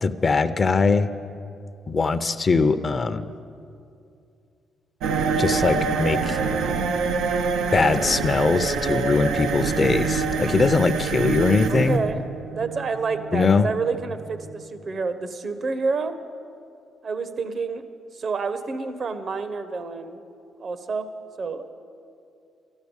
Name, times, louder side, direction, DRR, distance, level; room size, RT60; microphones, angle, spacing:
voice 1, 0.0-1.1 1.9-3.2 5.4-6.4 7.7-12.0 13.3-13.7, left 4 dB, 40° left, 11 dB, 0.6 m, -21 dB
sound 1, 5.0-14.6, right 5 dB, 85° right, 0.7 m, -26 dB
voice 2, 11.7-12.2 12.5-16.2 17.0-17.8 18.1-20.2 20.6-21.1 21.4-21.7, right 4 dB, 50° right, 10 dB, 1.0 m, -28 dB
12.5 x 12.0 x 7.2 m, 2.5 s
cardioid pair, 70°, 0 cm